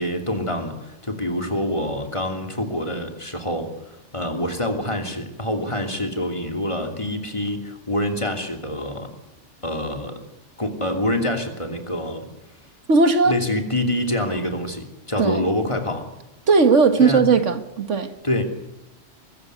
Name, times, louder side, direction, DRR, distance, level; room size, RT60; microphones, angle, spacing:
voice 1, 0.0-9.1 9.6-10.2 10.6-12.3 13.3-16.1 17.0-17.2 18.2-18.5, left 1 dB, 25° left, 2.9 m, -26 dB
voice 2, 12.9-13.4 15.2-15.4 16.5-18.1, right 4 dB, 80° right, 1.9 m, -17 dB
22.5 x 15.0 x 9.4 m
omnidirectional pair, 1.2 m